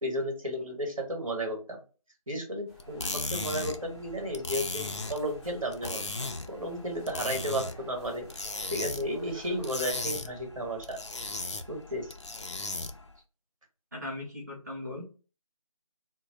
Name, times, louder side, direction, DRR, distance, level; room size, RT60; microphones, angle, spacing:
voice 1, 0.0-1.8 2.3-8.3 8.7-11.0 11.7-12.1, equal, 60° right, 1 dB, 1.4 m, -33 dB
sound 1, 2.7-10.0, right 2 dB, 5° right, 1.3 m, -52 dB
sound 2, 2.8-13.1, left 2 dB, 50° left, 0.4 m, -37 dB
voice 2, 13.9-15.0, left 1 dB, 30° right, -3 dB, 1.1 m, -38 dB
3.8 x 2.0 x 3.1 m, 0.35 s
figure-of-eight pair, 175°, 19 cm